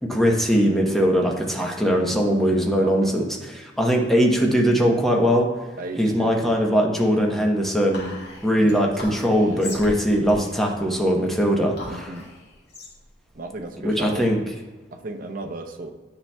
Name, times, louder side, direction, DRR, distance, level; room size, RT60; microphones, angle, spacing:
voice 1, 0.0-5.5 6.0-8.1 8.4-12.2 13.8-14.4, equal, ahead, 0 dB, 0.8 m, -21 dB
voice 2, 1.8-2.2 2.8-3.2 5.8-6.4 8.5-8.9 9.4-9.8 11.9-12.3 13.3-14.3 14.9-15.9, right 2 dB, 45° right, 3 dB, 0.6 m, -35 dB
Whispering, 7.9-14.6, left 2 dB, 60° left, 1.7 m, -40 dB
9.6 x 5.7 x 2.2 m, 1.2 s
head